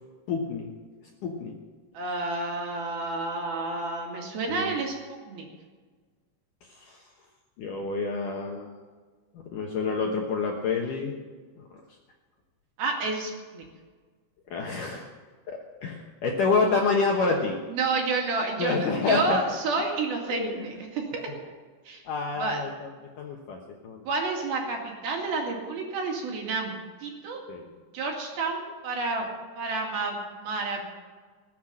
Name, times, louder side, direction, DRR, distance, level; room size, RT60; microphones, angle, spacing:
voice 1, 0.3-0.7 1.2-1.6 4.5-4.8 6.7-7.1 7.6-8.8 9.3-11.2 11.6-11.7 14.5-15.1 15.5-17.6 18.6-19.4 20.3-20.7 22.1-22.9 23.2-23.6 23.8-24.1 27.5-27.7, left 4 dB, 70° left, 0 dB, 2.1 m, -28 dB
voice 2, 1.9-5.0 5.3-5.5 12.8-13.6 17.7-21.5 21.9-22.0 22.4-22.6 24.1-27.4 27.9-29.3 29.6-30.9, right 3 dB, 60° right, 0 dB, 3.9 m, -30 dB
19.5 x 8.2 x 7.5 m, 1.4 s
omnidirectional pair, 5.2 m